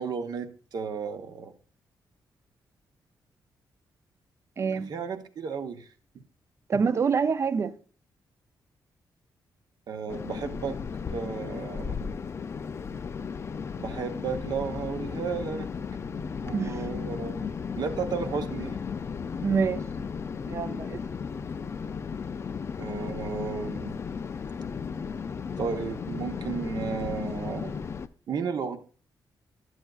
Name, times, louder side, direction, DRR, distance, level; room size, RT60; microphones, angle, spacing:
voice 1, 0.0-1.5 4.7-5.9 9.9-10.8 11.1-12.0 13.8-15.7 16.4-17.5 17.7-18.8 22.8-24.0 25.6-27.8 28.3-28.8, right 6 dB, 60° right, 0.8 m, -33 dB
voice 2, 4.6-4.9 6.7-7.7 16.5-16.8 19.4-19.8 20.5-21.0, right 6 dB, 35° right, 0.4 m, -26 dB
sound 1, 10.1-28.1, left 6 dB, 35° left, 0.3 m, -35 dB
11.5 x 7.8 x 2.3 m
cardioid pair, 130°, 8 cm